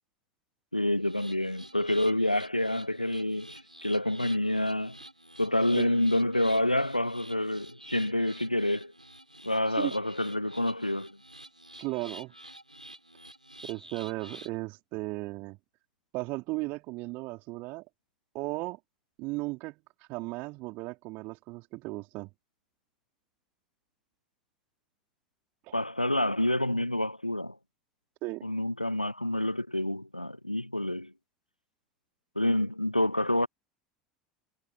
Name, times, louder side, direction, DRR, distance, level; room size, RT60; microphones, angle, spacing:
voice 1, 0.7-5.0 5.4-8.9 9.4-11.2 25.7-27.6 28.4-31.1 32.4-33.5, left 1 dB, 90° left, 0.4 m, -28 dB
sound 1, 1.0-14.6, right 1 dB, 90° right, 7.5 m, -49 dB
voice 2, 11.8-12.3 13.6-15.6 16.1-17.8 18.3-18.8 19.2-22.3 25.6-25.8 28.2-28.5, right 23 dB, 50° right, 4.6 m, -36 dB
figure-of-eight pair, 75°, 4 cm